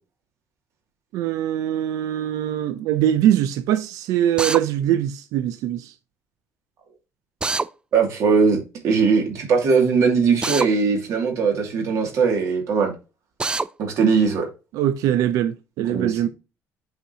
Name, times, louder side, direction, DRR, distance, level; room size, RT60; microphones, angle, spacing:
voice 1, 1.1-5.9 14.7-16.3, right 11 dB, 85° right, 0.6 m, -22 dB
Drill, 4.4-4.6 7.4-7.7 10.4-10.7 13.4-13.7, right 3 dB, 15° right, 0.4 m, -24 dB
voice 2, 7.9-8.6 8.8-12.9 13.8-14.5 15.8-16.2, right 5 dB, 65° right, 2.6 m, -20 dB
7.9 x 5.0 x 2.9 m
cardioid pair, 125°, 6 cm